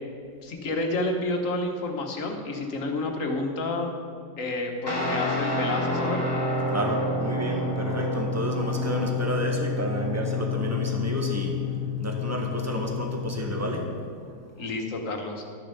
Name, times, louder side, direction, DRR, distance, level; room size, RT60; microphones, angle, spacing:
voice 1, 0.4-4.0 4.4-6.3 14.6-15.4, left 2 dB, 60° left, 3 dB, 1.6 m, -29 dB
Guitar, 4.9-13.8, left 3 dB, 15° left, 2.1 m, -29 dB
voice 2, 6.7-11.6 12.0-13.9, equal, 10° right, 1 dB, 1.3 m, -30 dB
12.0 x 6.9 x 6.9 m, 2.3 s
omnidirectional pair, 1.6 m